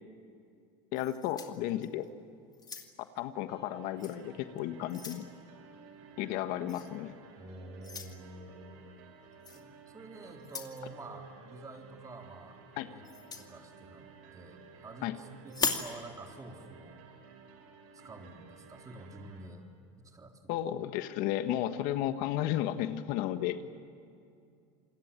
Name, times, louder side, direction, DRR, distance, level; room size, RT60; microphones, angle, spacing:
voice 1, 0.9-2.1 3.2-5.3 6.2-7.1 12.8-12.9 15.0-15.1 20.5-23.6, left 12 dB, 65° left, 9 dB, 1.5 m, -33 dB
sound 1, 0.9-2.1 2.5-3.2 4.0-4.2 4.6-5.3 6.7-6.9 7.8-8.1 9.4-9.6 10.4-10.8 13.0-13.5 15.5-15.9, left 4 dB, 25° left, 2.5 m, -37 dB
sound 2, 3.5-19.5, right 5 dB, 75° right, 4.7 m, -55 dB
voice 2, 7.4-9.0 9.5-14.1 14.3-17.0 17.9-19.7 20.0-20.6, right 2 dB, 20° right, 3 dB, 3.5 m, -49 dB
28.0 x 20.5 x 9.0 m, 2.4 s
supercardioid pair, 105°, 16 cm